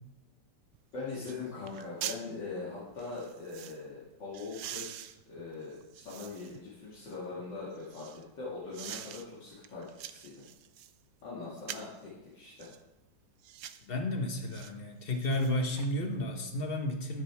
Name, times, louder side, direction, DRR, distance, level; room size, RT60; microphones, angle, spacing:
sound 1, 0.7-0.8 1.2-1.4 1.7-2.2 3.0-3.8 4.3-6.6 7.1-8.2 8.7-9.2 9.6-11.0 11.6-12.0 12.6-12.8 13.4-13.9 14.5-14.7 15.1-15.9 16.2-16.3, right 11 dB, 70° right, 0.8 m, -44 dB
voice 1, 0.9-10.5 11.2-12.7, left 3 dB, 75° left, -8 dB, 2.9 m, -42 dB
voice 2, 13.9-17.2, left 1 dB, 35° left, 4 dB, 1.2 m, -32 dB
13.0 x 10.0 x 3.5 m, 0.98 s
omnidirectional pair, 2.0 m